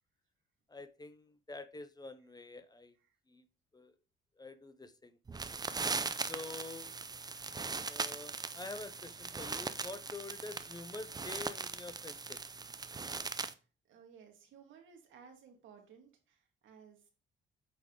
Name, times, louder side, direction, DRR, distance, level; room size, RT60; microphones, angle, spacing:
voice 1, 0.7-3.0 3.3-3.4 3.7-4.0 4.4-5.2 6.3-6.9 7.8-12.4, left 3 dB, 20° left, 0.7 m, -47 dB
sound 1, 5.3-13.5, right 4 dB, 20° right, 0.5 m, -40 dB
voice 2, 13.9-17.1, right 6 dB, 75° right, 1.8 m, -58 dB
8.5 x 3.7 x 3.7 m
cardioid pair, 90°, 20 cm